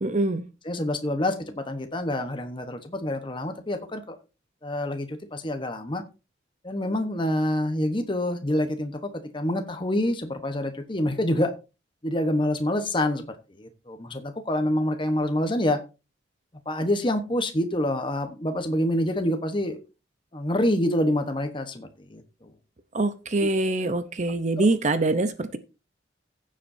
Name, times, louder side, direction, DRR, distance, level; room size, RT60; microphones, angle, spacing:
voice 1, 0.0-0.4 22.9-25.6, right 2 dB, 40° right, 11 dB, 0.7 m, -24 dB
voice 2, 0.7-4.2 4.6-6.0 6.6-11.5 12.0-15.8 16.7-19.8 20.3-22.5 23.4-23.5 24.6-24.7, left 1 dB, 25° left, 7 dB, 1.1 m, -27 dB
16.0 x 7.5 x 2.7 m, 0.30 s
head